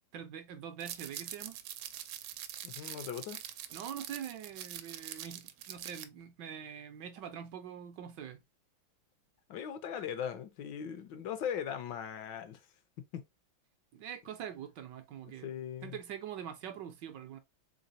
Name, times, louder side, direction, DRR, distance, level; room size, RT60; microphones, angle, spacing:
voice 1, 0.1-1.6 3.7-8.4 13.9-15.5 15.8-17.4, right 9 dB, 70° right, 1.1 m, -44 dB
sound 1, 0.8-6.0, right 11 dB, 90° right, 1.4 m, -44 dB
voice 2, 2.6-3.4 9.5-12.6 13.1-13.2 15.4-16.0, left 8 dB, 75° left, 1.2 m, -39 dB
3.9 x 3.6 x 2.6 m
omnidirectional pair, 2.2 m